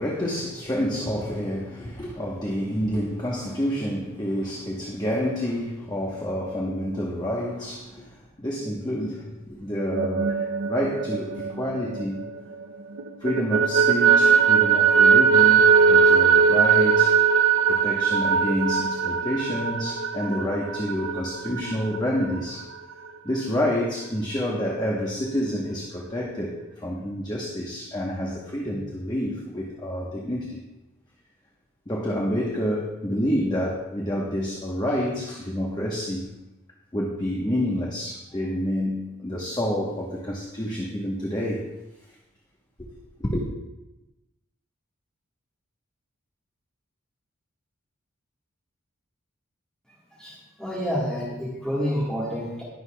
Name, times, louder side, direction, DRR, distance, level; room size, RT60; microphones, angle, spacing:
voice 1, 0.0-12.2 13.2-17.1 17.7-22.7 23.2-26.5 26.8-30.6 31.9-36.3 36.9-41.6 42.8-42.9 43.2-43.5, equal, 20° left, -3 dB, 1.1 m, -28 dB
sound 1, 9.8-12.6 13.0-22.4, right 6 dB, 70° right, 0.5 m, -20 dB
voice 2, 50.2-52.6, equal, 5° left, -7 dB, 1.5 m, -28 dB
20.0 x 6.9 x 2.3 m, 0.98 s
head